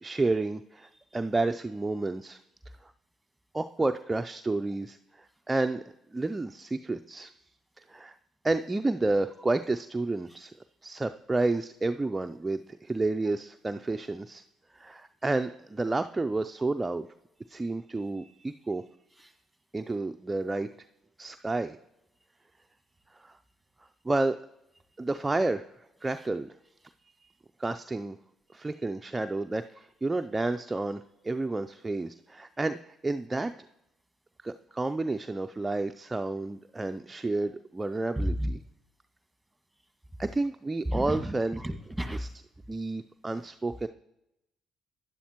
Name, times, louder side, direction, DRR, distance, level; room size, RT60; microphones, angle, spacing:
voice 1, 0.0-2.4 2.8-2.9 3.5-5.8 6.1-7.3 7.8-8.1 8.4-10.5 10.8-14.4 14.7-17.1 17.5-18.8 19.7-20.7 21.2-21.8 23.2-23.4 24.0-24.4 25.0-25.7 26.0-26.5 27.6-28.2 28.5-33.5 34.4-38.6 40.2-41.6 42.1-42.3 42.7-43.9, right 2 dB, 20° right, 8 dB, 0.4 m, -30 dB
voice 2, 38.2-38.5 40.9-42.2, equal, ahead, 4 dB, 1.8 m, -31 dB
11.0 x 10.0 x 3.0 m, 0.85 s
hypercardioid pair, 55°, 0 cm